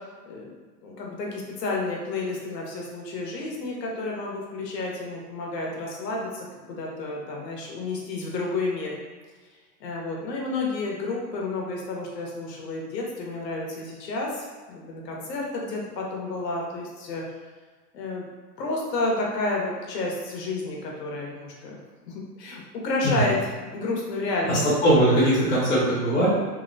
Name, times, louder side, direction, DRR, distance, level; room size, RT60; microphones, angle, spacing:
voice 1, 0.8-9.0 9.8-17.2 17.9-18.3 18.6-21.8 22.1-24.6, left 2 dB, 75° left, -2 dB, 0.8 m, -30 dB
voice 2, 24.5-26.3, right 1 dB, 35° left, -8 dB, 0.8 m, -20 dB
2.8 x 2.0 x 2.6 m, 1.4 s
supercardioid pair, 180°, 50 cm